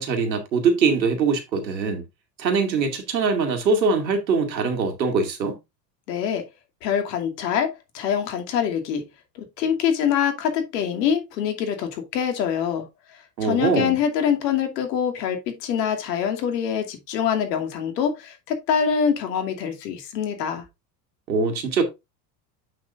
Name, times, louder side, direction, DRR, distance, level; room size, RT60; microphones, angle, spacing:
voice 1, 0.0-2.0 2.4-5.6 13.4-14.0 21.3-21.8, right 4 dB, 90° right, 2.5 m, -22 dB
voice 2, 6.1-6.4 6.8-9.1 9.4-12.9 13.4-20.6, left 8 dB, 75° left, 2.6 m, -24 dB
8.6 x 6.8 x 2.5 m
hypercardioid pair, 80°, 50 cm